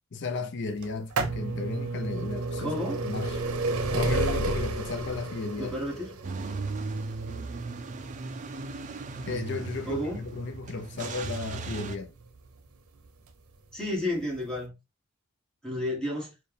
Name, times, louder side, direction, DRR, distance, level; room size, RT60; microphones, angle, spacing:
voice 1, 0.1-2.8 3.0-3.4 3.9-5.8 9.3-12.1, left 4 dB, 55° left, 0.5 m, -34 dB
sound 1, 0.8-12.5 13.3-13.4 14.3-14.4 14.6-14.7, right 2 dB, 85° right, 0.6 m, -32 dB
voice 2, 2.6-3.0 5.6-6.2 9.9-10.2 13.7-14.8 15.6-16.3, left 1 dB, 5° left, 1.6 m, -31 dB
Car / Engine starting / Idling, 6.2-12.0, right 3 dB, 35° right, 0.4 m, -37 dB
4.4 x 2.5 x 3.3 m
head